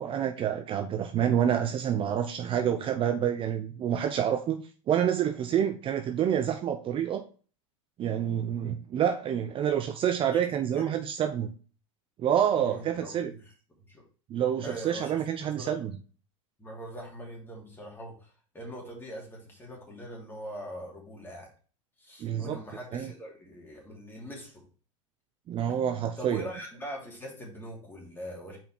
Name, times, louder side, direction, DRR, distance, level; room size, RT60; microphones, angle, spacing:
voice 1, 0.0-7.2 8.0-11.5 12.2-13.3 14.3-15.9 22.2-22.6 22.9-23.1 25.5-26.4, right 9 dB, 35° right, 7 dB, 0.6 m, -28 dB
voice 2, 12.5-13.4 13.9-14.0 14.6-15.2 15.6-15.9 16.6-18.3 18.5-21.5 22.0-24.6 26.2-28.6, equal, 15° left, -1 dB, 2.7 m, -42 dB
5.2 x 4.5 x 4.3 m, 0.39 s
hypercardioid pair, 100°, 16 cm